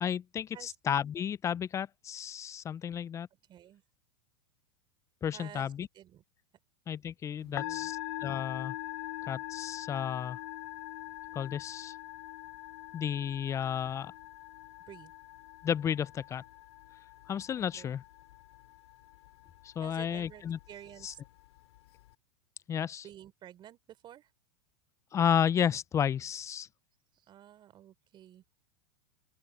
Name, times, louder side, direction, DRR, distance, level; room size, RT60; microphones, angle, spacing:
voice 1, 0.0-3.3 5.2-5.9 6.9-8.0 8.2-8.7 9.3-10.4 11.3-11.9 12.9-14.1 15.6-16.4 17.3-18.0 19.6-20.6 21.0-21.1 22.7-23.0 25.1-26.7, left 8 dB, 20° left, 0.4 m, -32 dB
voice 2, 3.5-3.8 5.3-6.2 7.4-7.9 14.9-15.1 17.6-17.9 19.8-21.2 23.0-24.3 27.1-28.4, right 11 dB, 35° right, 3.3 m, -51 dB
Musical instrument, 7.4-22.1, left 17 dB, 70° left, 2.6 m, -43 dB
open air
hypercardioid pair, 110°, 14 cm